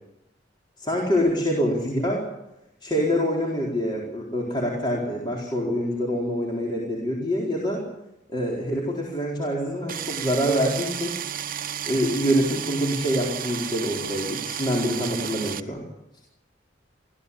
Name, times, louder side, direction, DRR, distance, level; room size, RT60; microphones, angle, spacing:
voice 1, 0.8-2.2 2.8-7.8 8.3-11.2 11.9-15.8, equal, 25° left, -3 dB, 4.2 m, -25 dB
sound 1, 9.9-15.6, right 9 dB, 50° right, 0.9 m, -32 dB
25.0 x 16.0 x 8.5 m, 0.90 s
head